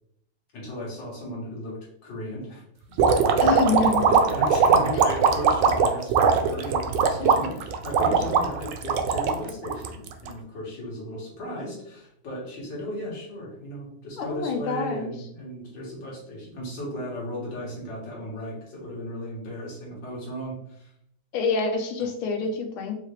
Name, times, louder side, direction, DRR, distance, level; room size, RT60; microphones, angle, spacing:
voice 1, 0.5-2.6 3.3-20.9, equal, 60° left, -4 dB, 2.2 m, -36 dB
sound 1, 3.0-10.3, right 6 dB, 75° right, 1.1 m, -20 dB
voice 2, 3.4-4.1 14.2-15.1 21.3-22.9, left 4 dB, 75° left, 3 dB, 1.6 m, -26 dB
5.0 x 2.8 x 3.2 m, 0.73 s
omnidirectional pair, 2.3 m